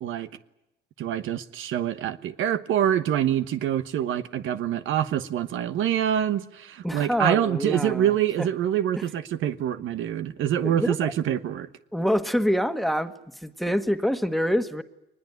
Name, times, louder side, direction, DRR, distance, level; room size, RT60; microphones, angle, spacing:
voice 1, 1.0-11.7, right 10 dB, 80° right, 1.2 m, -25 dB
voice 2, 6.8-8.1 8.4-8.5 9.0-9.1 10.6-11.1 11.9-14.8, equal, ahead, 1.6 m, -26 dB
22.0 x 20.5 x 9.5 m
cardioid pair, 90°, 20 cm